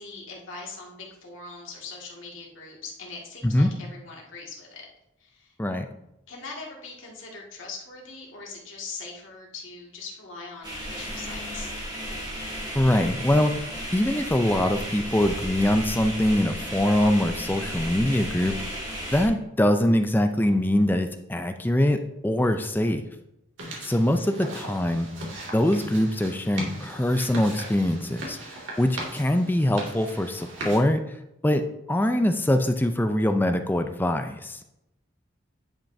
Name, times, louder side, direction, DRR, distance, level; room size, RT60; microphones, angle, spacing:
voice 1, 0.0-4.9 5.2-5.5 6.3-11.8 23.8-24.1, left 4 dB, 75° left, -2 dB, 2.1 m, -41 dB
sound 1, 10.6-19.3, equal, 20° right, 2.7 m, -34 dB
voice 2, 12.7-13.5 13.9-18.6 19.1-23.1 23.8-25.1 25.5-28.4 28.8-31.0 31.4-31.6 31.9-34.6, left 1 dB, 10° left, 7 dB, 0.4 m, -23 dB
sound 2, 23.6-30.8, right 1 dB, 70° right, 2.2 m, -38 dB
10.0 x 5.7 x 2.7 m, 0.85 s
head